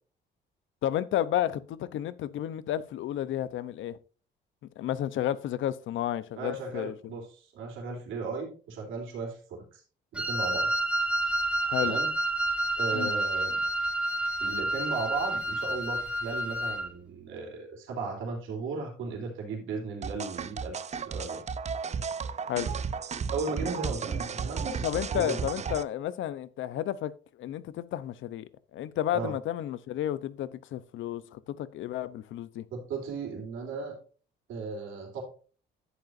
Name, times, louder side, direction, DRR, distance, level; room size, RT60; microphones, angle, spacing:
voice 1, 0.8-4.0 4.8-7.2 11.7-12.0 12.9-13.1 22.5-22.7 24.8-32.6, left 11 dB, 80° left, 0.7 m, -32 dB
voice 2, 6.4-9.8 10.1-10.7 11.2-11.4 11.8-12.1 12.8-13.6 14.4-21.4 23.3-24.8 25.1-25.4 29.1-29.3 32.7-33.9 34.5-35.2, right 4 dB, 85° right, 3.3 m, -36 dB
Wind instrument woodwind instrument, 10.1-16.9, right 1 dB, 5° right, 1.2 m, -29 dB
sound 1, 20.0-25.8, right 6 dB, 35° right, 0.5 m, -34 dB
11.0 x 7.9 x 2.6 m
cardioid pair, 90°, 20 cm